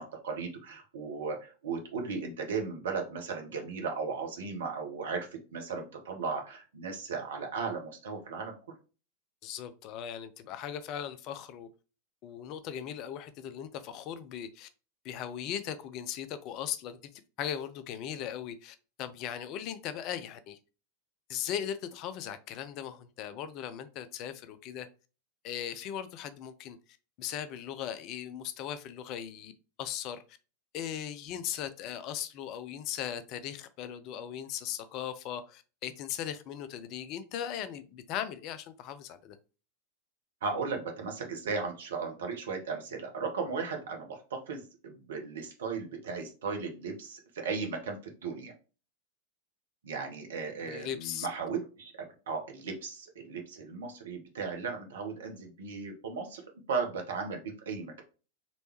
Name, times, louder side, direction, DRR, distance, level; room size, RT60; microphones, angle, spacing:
voice 1, 0.0-8.5 40.4-48.5 49.8-56.4 56.7-58.0, right 5 dB, 60° right, 1.1 m, -36 dB
voice 2, 9.4-11.7 12.2-14.7 15.0-20.6 21.3-24.9 25.4-26.8 27.2-29.5 29.8-30.4 30.7-39.4 50.7-51.3, left 9 dB, 40° left, 0.4 m, -38 dB
4.1 x 3.3 x 3.0 m
figure-of-eight pair, 90°, 0 cm